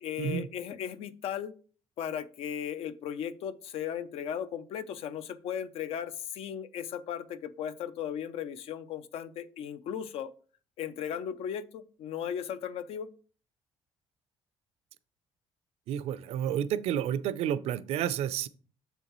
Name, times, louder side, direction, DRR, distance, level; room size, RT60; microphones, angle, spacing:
voice 1, 0.0-1.5 2.0-10.3 10.8-13.1, left 9 dB, 70° left, 12 dB, 0.6 m, -36 dB
voice 2, 15.9-18.5, right 10 dB, 75° right, 16 dB, 0.5 m, -30 dB
7.2 x 6.8 x 3.0 m, 0.41 s
cardioid pair, 130°, 11 cm